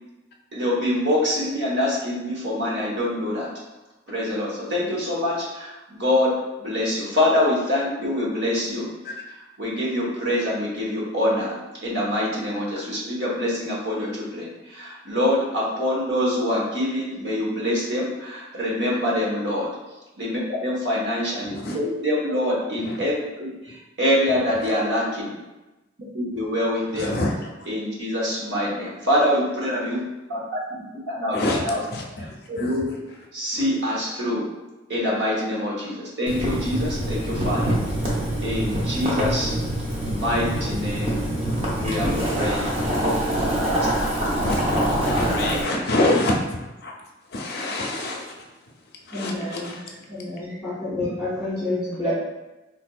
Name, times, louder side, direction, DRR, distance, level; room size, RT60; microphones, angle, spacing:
voice 1, 0.5-3.5 4.1-8.9 9.6-19.7 20.2-25.4 26.1-27.2 27.7-30.0 30.3-31.8 32.5-33.0 33.3-34.5 34.9-37.8 38.4-39.6 40.0-41.1 41.8-43.1 52.0-52.1, left 1 dB, 65° right, -5 dB, 0.9 m, -25 dB
voice 2, 26.9-27.5 31.3-32.8 33.5-33.7 42.3-42.8 44.0-46.9 47.3-48.4 49.1-50.0, left 1 dB, 55° left, 0 dB, 0.5 m, -27 dB
Boiling, 36.3-45.6, right 1 dB, 30° right, 0.7 m, -25 dB
voice 3, 49.1-49.8 50.1-52.1, left 1 dB, 10° right, -16 dB, 1.3 m, -29 dB
3.8 x 2.6 x 2.2 m, 1.0 s
head